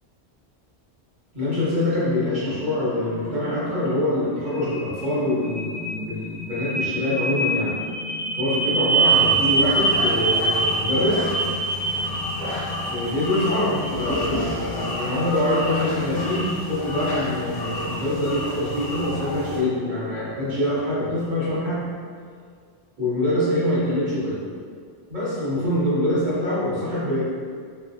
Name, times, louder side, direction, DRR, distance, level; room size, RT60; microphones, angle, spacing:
voice 1, 1.3-7.7 8.4-11.3 12.9-21.9 23.0-24.4 25.1-27.2, left 1 dB, 45° right, -10 dB, 1.1 m, -24 dB
sound 1, 2.4-20.1, right 3 dB, 80° left, 0.9 m, -27 dB
sound 2, 9.0-19.6, left 1 dB, 50° left, 0.7 m, -30 dB
3.0 x 2.6 x 2.6 m, 2.1 s
omnidirectional pair, 1.1 m